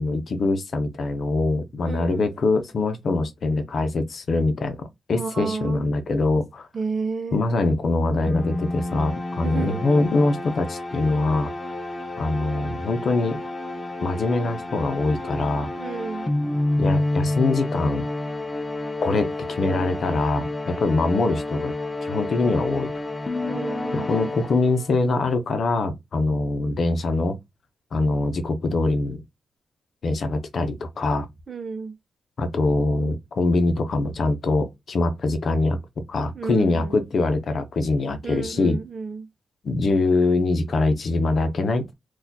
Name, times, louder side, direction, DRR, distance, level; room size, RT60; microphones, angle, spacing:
voice 1, 0.0-4.8 5.1-6.7 7.3-11.5 12.2-13.4 14.0-15.7 16.8-18.0 19.0-21.7 22.0-22.9 23.9-27.4 27.9-29.2 30.0-31.3 32.4-35.8 36.1-38.8 39.6-41.9, left 3 dB, 55° left, 0.7 m, -23 dB
voice 2, 1.8-2.3 5.1-5.8 6.7-7.4 9.4-9.8 15.8-16.3 23.5-24.1 31.5-31.9 36.3-37.0 38.2-39.3, right 4 dB, 45° right, 0.6 m, -31 dB
sound 1, 8.3-25.0, left 2 dB, 20° left, 0.4 m, -29 dB
4.0 x 2.4 x 2.8 m
wide cardioid pair, 130°, 0 cm